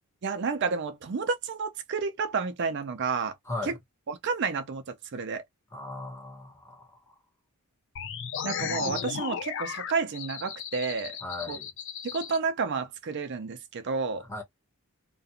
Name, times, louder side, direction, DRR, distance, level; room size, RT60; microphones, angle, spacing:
voice 1, 0.2-3.3 3.6-3.8 4.1-5.4 8.4-11.2 11.5-11.6 12.0-14.3, right 5 dB, 50° right, 0.4 m, -30 dB
voice 2, 5.7-7.2 11.2-11.7 14.3-14.4, left 2 dB, 15° left, 1.0 m, -37 dB
sound 1, 8.0-12.4, left 7 dB, 55° left, 0.4 m, -35 dB
2.4 x 2.2 x 2.8 m
head